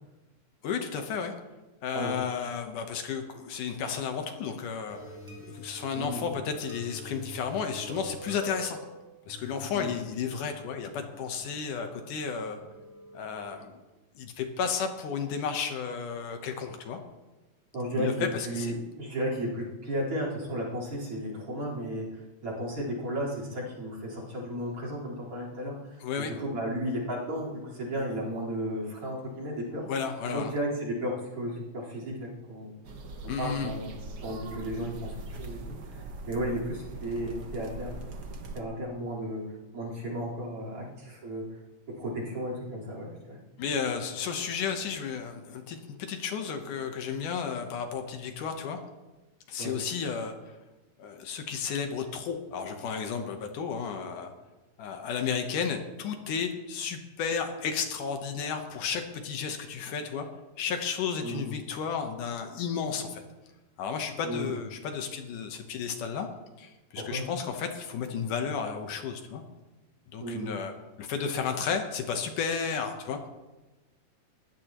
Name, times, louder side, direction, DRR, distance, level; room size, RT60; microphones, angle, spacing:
voice 1, 0.6-1.3 1.8-5.2 5.5-8.8 9.3-12.6 13.1-13.7 14.2-17.0 18.0-18.7 26.0-26.3 29.8-30.5 33.3-33.7 43.6-48.8 49.5-50.3 51.0-54.3 54.8-60.3 60.6-63.2 63.8-66.3 66.6-69.4 70.1-70.7 71.0-73.3, left 6 dB, 75° left, 5 dB, 2.6 m, -33 dB
sound 1, 4.9-13.5, equal, 5° left, 5.4 m, -46 dB
voice 2, 5.9-6.3 9.7-9.9 17.7-22.1 22.4-29.9 30.3-32.7 33.4-33.9 34.2-35.1 35.4-38.2 38.5-39.4 39.7-41.4 42.0-43.4 49.6-49.7 61.2-61.5 64.2-64.6 67.0-67.2 70.2-70.5, equal, 40° right, -3 dB, 5.1 m, -34 dB
sound 2, 32.8-38.6, right 2 dB, 80° right, 0.9 m, -41 dB
21.0 x 15.0 x 3.1 m, 1.1 s
omnidirectional pair, 3.8 m